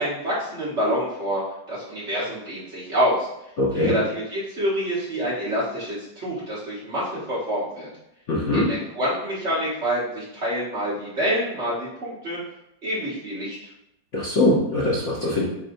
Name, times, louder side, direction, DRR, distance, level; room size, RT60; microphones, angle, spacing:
voice 1, 0.0-1.4 1.7-3.3 3.7-7.9 8.5-12.4 12.8-13.6, equal, 40° right, -8 dB, 1.5 m, -27 dB
voice 2, 3.6-3.9 8.3-8.7 14.1-15.4, left 1 dB, 50° left, -6 dB, 1.0 m, -21 dB
7.6 x 2.6 x 2.7 m, 0.82 s
omnidirectional pair, 2.0 m